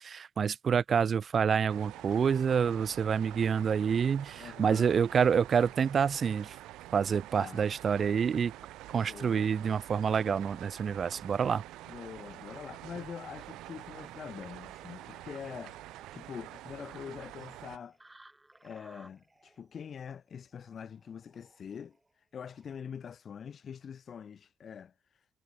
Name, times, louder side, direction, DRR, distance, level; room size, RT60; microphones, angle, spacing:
voice 1, 0.0-6.6 6.9-8.5 8.9-11.6, right 7 dB, 50° right, 0.3 m, -27 dB
sound 1, 1.7-17.8, right 16 dB, 70° right, 2.1 m, -47 dB
voice 2, 4.4-4.9 7.4-7.7 8.9-9.5 11.9-18.0 18.6-25.3, left 7 dB, 50° left, 1.0 m, -45 dB
sound 2, 14.7-23.0, right 2 dB, 15° right, 4.0 m, -61 dB
figure-of-eight pair, 40°, 0 cm